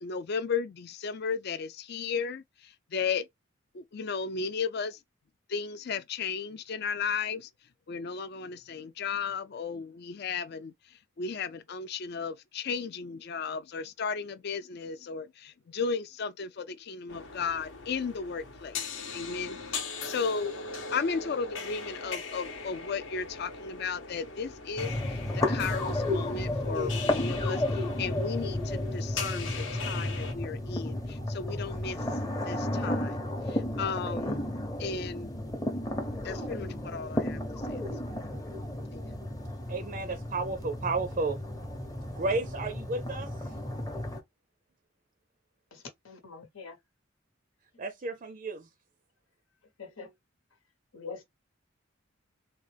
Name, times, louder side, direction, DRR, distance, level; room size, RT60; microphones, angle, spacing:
voice 1, 0.0-3.3 3.7-5.0 5.5-7.5 7.9-20.6 20.9-32.1 32.5-33.2 33.5-34.4 34.8-35.4 36.2-37.4 37.7-37.8 38.9-39.1, left 5 dB, 50° left, 0.4 m, -35 dB
sound 1, 17.1-30.3, left 4 dB, 65° left, 0.9 m, -40 dB
sound 2, 24.8-44.2, left 1 dB, 20° left, 0.7 m, -33 dB
voice 2, 39.7-41.4 42.2-43.5 47.8-48.7, right 3 dB, 40° right, 0.4 m, -32 dB
voice 3, 45.7-46.8 49.8-50.1 50.9-51.2, left 5 dB, 85° left, 1.1 m, -44 dB
3.8 x 2.3 x 3.2 m
head